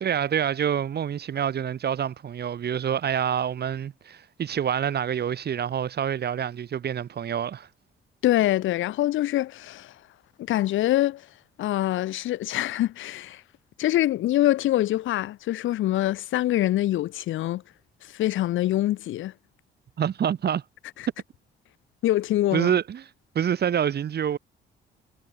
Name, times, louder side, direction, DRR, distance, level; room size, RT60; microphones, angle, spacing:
voice 1, 0.0-7.7 20.0-20.6 22.5-23.0 23.4-24.4, right 9 dB, 55° right, 1.7 m, -27 dB
voice 2, 8.2-9.9 10.4-11.3 11.6-13.4 13.8-17.6 18.0-19.3 21.0-21.1 22.0-22.7, left 14 dB, 80° left, 1.3 m, -24 dB
cardioid pair, 90°, 20 cm